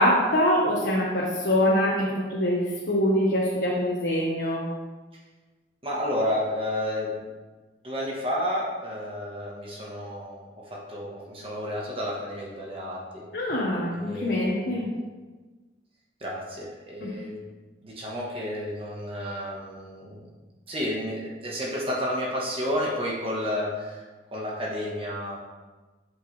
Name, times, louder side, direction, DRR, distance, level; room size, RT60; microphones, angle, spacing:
voice 1, 0.0-4.6 13.3-14.9 17.0-17.1, left 1 dB, 60° left, -5 dB, 1.3 m, -24 dB
voice 2, 5.8-7.2 7.8-13.2 13.9-14.7 16.2-17.5 17.8-20.3 20.7-24.1 24.3-25.3, left 1 dB, 30° right, -4 dB, 1.4 m, -31 dB
8.1 x 7.4 x 3.3 m, 1.3 s
head